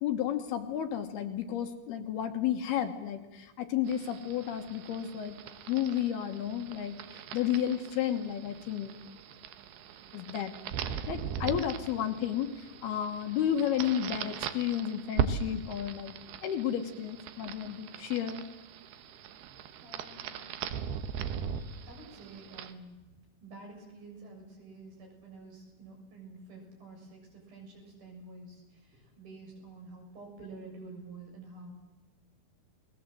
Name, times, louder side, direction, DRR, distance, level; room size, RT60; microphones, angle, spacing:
voice 1, 0.0-5.4 5.7-9.0 10.1-10.5 11.1-18.4, left 10 dB, 70° left, 6 dB, 3.0 m, -32 dB
sound 1, 3.9-22.7, right 8 dB, 70° right, 3.0 m, -39 dB
voice 2, 19.8-20.3 21.8-23.0 23.4-31.7, right 3 dB, 55° right, 1 dB, 8.2 m, -49 dB
29.5 x 20.5 x 7.7 m, 1.1 s
omnidirectional pair, 5.1 m